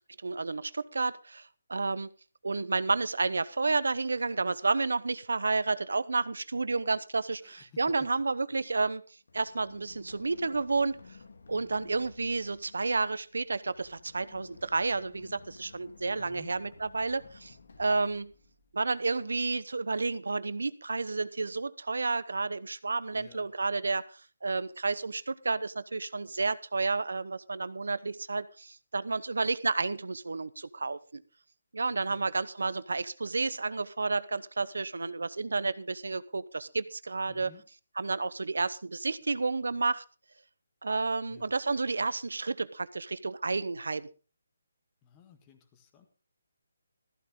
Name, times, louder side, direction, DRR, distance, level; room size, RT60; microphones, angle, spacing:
voice 1, 0.2-2.1 2.4-9.0 9.3-11.0 11.5-18.3 18.7-31.2 31.7-37.5 38.0-40.0 40.8-44.1, right 3 dB, 90° right, 17 dB, 0.9 m, -31 dB
voice 2, 7.4-8.1 8.5-8.6 16.2-16.6 23.1-23.5 31.8-32.3 37.3-37.6 41.3-41.5 45.0-46.1, left 7 dB, 15° left, 7 dB, 1.7 m, -56 dB
Run, 9.3-19.0, left 4 dB, 70° left, 1.7 m, -54 dB
14.5 x 12.0 x 3.7 m, 0.35 s
hypercardioid pair, 170°, 0 cm